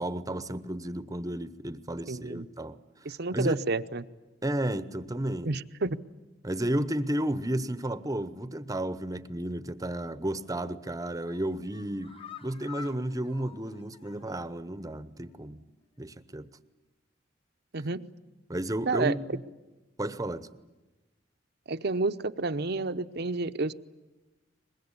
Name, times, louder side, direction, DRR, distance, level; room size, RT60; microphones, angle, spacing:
voice 1, 0.0-3.6 4.4-5.6 6.4-12.1 12.4-15.6 16.0-16.5 18.5-19.4 20.0-20.5, right 1 dB, 20° right, 14 dB, 0.9 m, -32 dB
voice 2, 2.1-2.5 3.0-4.0 5.4-6.0 17.7-18.0 18.9-19.1 21.7-23.7, right 3 dB, 60° right, 12 dB, 0.9 m, -30 dB
sound 1, 10.3-10.7 11.1-14.5 14.8-14.9 15.3-15.4, left 6 dB, 30° left, 1.2 m, -49 dB
23.5 x 21.5 x 9.8 m, 1.1 s
head